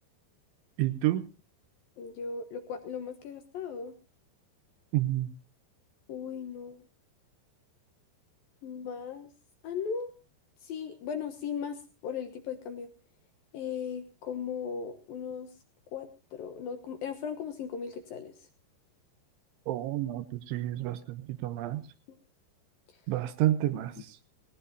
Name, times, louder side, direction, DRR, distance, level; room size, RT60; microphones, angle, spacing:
voice 1, 0.8-1.2 4.9-5.3 19.7-21.8 23.1-24.2, right 14 dB, 85° right, 11 dB, 3.5 m, -30 dB
voice 2, 2.0-3.9 6.1-6.9 8.6-9.3 9.6-10.1 10.6-12.9 13.5-15.5 15.9-18.5, left 6 dB, 65° left, 7 dB, 2.5 m, -37 dB
18.5 x 18.5 x 2.8 m, 0.32 s
omnidirectional pair, 5.3 m